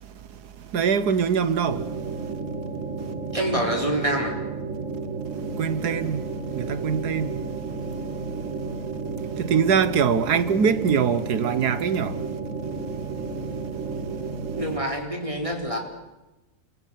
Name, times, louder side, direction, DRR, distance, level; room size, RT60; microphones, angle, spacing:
voice 1, 0.7-1.8 5.6-6.2 6.6-7.3 9.4-12.1, right 6 dB, 75° right, 1.7 m, -22 dB
sound 1, 1.7-14.8, right 4 dB, 50° right, 2.1 m, -32 dB
voice 2, 3.3-4.3 14.6-15.8, right 1 dB, 20° right, 4.2 m, -26 dB
29.0 x 22.5 x 5.8 m
omnidirectional pair, 1.7 m